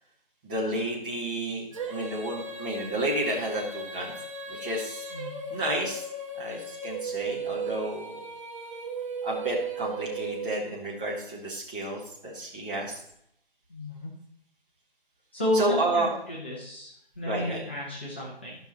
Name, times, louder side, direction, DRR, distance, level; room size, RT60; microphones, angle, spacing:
voice 1, 0.4-4.1 4.5-5.0 5.5-6.0 6.3-8.2 9.2-13.0 15.5-16.1 17.2-17.6, right 1 dB, 10° right, -5 dB, 1.1 m, -31 dB
Female singing, 1.7-10.9, right 3 dB, 35° right, 1.3 m, -36 dB
voice 2, 13.7-14.1 15.3-18.6, left 1 dB, 10° left, -6 dB, 0.9 m, -32 dB
13.5 x 5.8 x 4.2 m, 0.74 s
figure-of-eight pair, 155°, 30 cm